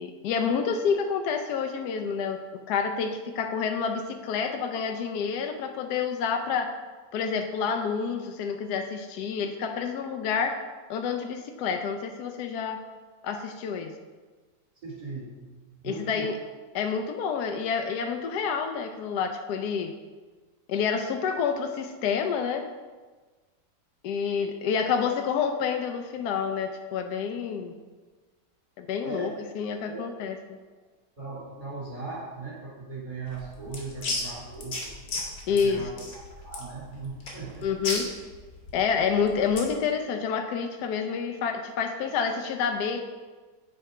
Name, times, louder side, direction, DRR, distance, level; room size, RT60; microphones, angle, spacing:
voice 1, 0.0-2.4 2.7-6.8 7.1-10.6 10.9-12.8 13.2-13.9 15.8-16.4 16.7-19.9 20.7-22.6 24.0-27.7 28.8-30.4 35.5-35.9 37.6-38.0 38.7-43.0, left 6 dB, 75° left, 5 dB, 1.1 m, -28 dB
voice 2, 14.8-16.3 29.0-29.3 29.9-30.1 31.2-34.9 35.5-35.9 36.4-37.7, right 3 dB, 25° right, -7 dB, 2.5 m, -38 dB
sound 1, 33.3-39.8, left 2 dB, 60° left, 1.7 m, -35 dB
9.0 x 3.4 x 4.8 m, 1.4 s
omnidirectional pair, 1.8 m